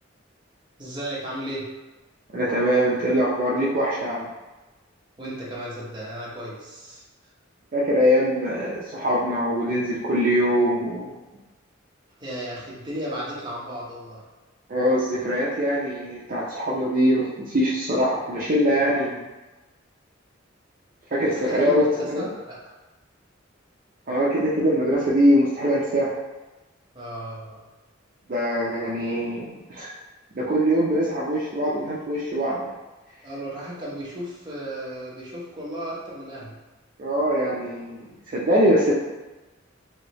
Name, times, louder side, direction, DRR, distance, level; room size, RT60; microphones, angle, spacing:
voice 1, 0.8-1.7 5.2-7.0 12.2-14.2 18.8-19.1 21.4-22.6 26.9-27.6 33.2-36.6, right 1 dB, 25° right, -7 dB, 0.9 m, -34 dB
voice 2, 2.3-4.3 7.7-11.1 14.7-19.2 21.1-22.3 24.1-26.2 28.3-29.9 30.3-32.6 37.0-38.9, equal, 45° right, -7 dB, 0.5 m, -22 dB
3.1 x 2.7 x 2.9 m, 1.2 s
head